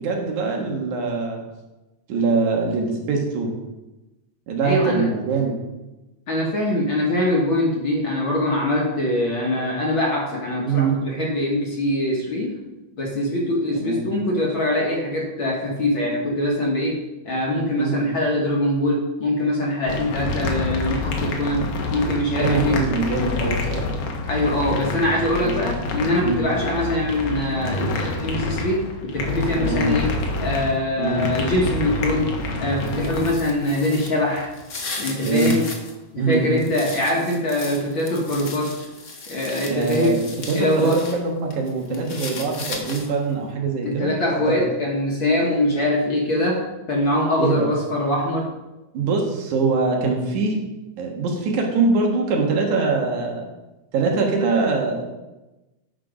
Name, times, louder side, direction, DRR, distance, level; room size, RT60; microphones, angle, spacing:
voice 1, 0.0-1.4 2.1-3.5 4.5-5.6 10.6-11.0 13.7-14.0 17.8-18.0 22.4-23.8 25.4-25.5 26.2-26.4 29.6-29.9 31.0-31.2 35.3-35.6 36.2-36.4 39.7-44.1 44.5-44.6 47.4-47.7 48.9-50.6 51.0-53.4 53.9-55.1, right 4 dB, 75° right, 1 dB, 2.8 m, -23 dB
voice 2, 4.6-5.1 6.3-12.5 13.0-22.8 24.2-32.3 32.6-34.5 35.0-35.7 36.1-38.7 39.3-40.2 40.5-41.0 43.8-48.5, left 1 dB, 50° left, -2 dB, 1.8 m, -23 dB
sound 1, 19.9-33.3, left 3 dB, 75° left, 2.5 m, -27 dB
sound 2, 32.8-35.9 36.3-41.2 41.5-43.3, left 3 dB, 90° left, 0.6 m, -36 dB
9.3 x 6.4 x 5.0 m, 1.0 s
omnidirectional pair, 3.4 m